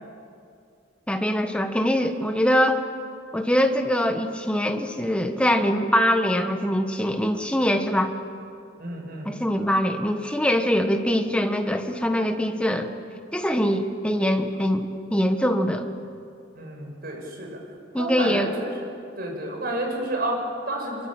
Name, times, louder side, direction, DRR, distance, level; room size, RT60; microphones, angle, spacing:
voice 1, 1.1-2.8 3.3-8.1 9.2-12.9 13.3-15.9 17.9-18.5, equal, 5° left, 5 dB, 1.5 m, -23 dB
voice 2, 8.8-9.3 16.5-17.6 18.0-18.9 19.2-21.1, right 1 dB, 50° right, 1 dB, 6.8 m, -30 dB
25.5 x 24.0 x 9.0 m, 2.4 s
head